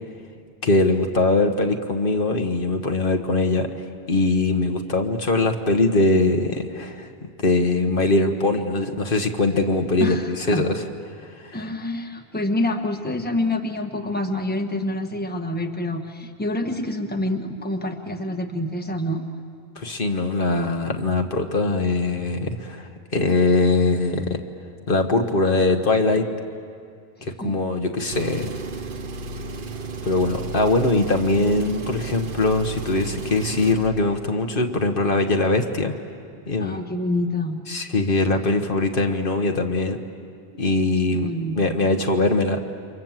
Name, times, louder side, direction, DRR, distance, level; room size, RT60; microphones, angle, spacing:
voice 1, 0.6-3.7 4.1-7.1 7.4-10.7 11.2-11.6 19.7-24.4 24.9-26.2 27.4-28.5 30.0-35.9 36.5-36.8 37.7-40.0 40.6-42.6, left 2 dB, 60° left, 5 dB, 1.4 m, -21 dB
voice 2, 10.0-10.6 11.5-19.2 27.4-27.6 36.6-37.6 41.1-41.8, left 1 dB, 10° left, 4 dB, 1.4 m, -27 dB
Engine, 28.0-33.9, right 3 dB, 60° right, 1.1 m, -33 dB
29.0 x 25.0 x 7.5 m, 2.3 s
omnidirectional pair, 1.0 m